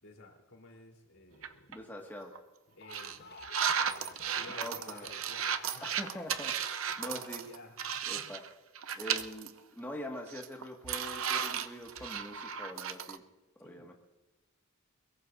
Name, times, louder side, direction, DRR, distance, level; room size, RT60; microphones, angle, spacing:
voice 1, 0.0-1.7 2.8-3.4 3.7-5.9 6.9-8.2 13.6-13.9, left 2 dB, 90° left, 0 dB, 3.8 m, -54 dB
sound 1, 1.4-1.8 2.2-2.4 2.9-8.5 8.8-9.5 9.8-9.9 10.3-13.2, right 8 dB, 75° right, 0.7 m, -35 dB
voice 2, 1.7-2.3 4.6-5.1 5.8-7.4 8.1-8.4 8.9-13.2 13.6-13.9, left 1 dB, 10° left, -1 dB, 1.9 m, -44 dB
sound 2, 2.7-8.0, left 4 dB, 50° left, 0.7 m, -52 dB
23.0 x 21.5 x 2.7 m, 1.1 s
head